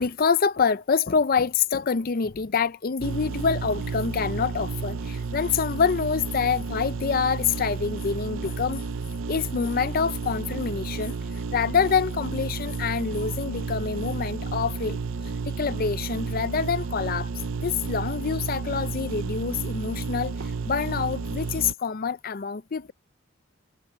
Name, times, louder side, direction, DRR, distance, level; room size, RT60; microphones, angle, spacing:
voice 1, 0.0-8.8 9.3-11.2 11.5-15.0 15.5-17.3 17.6-22.9, left 6 dB, 45° left, 0.5 m, -26 dB
sound 1, 3.0-21.7, right 4 dB, 65° right, 0.6 m, -32 dB
head